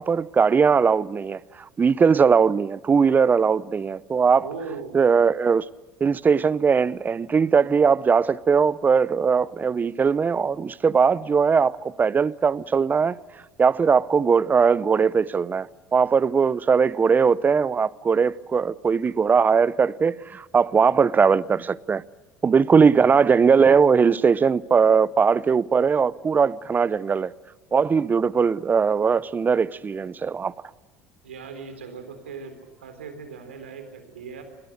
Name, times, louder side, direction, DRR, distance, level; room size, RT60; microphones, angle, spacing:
voice 1, 0.0-4.5 4.9-5.6 6.0-13.2 13.6-22.0 22.4-27.3 27.7-30.5, right 6 dB, 30° right, 0.8 m, -20 dB
voice 2, 4.3-5.0 31.2-34.4, right 5 dB, 90° right, 4.0 m, -38 dB
29.0 x 21.5 x 6.6 m
hypercardioid pair, 70°, 6 cm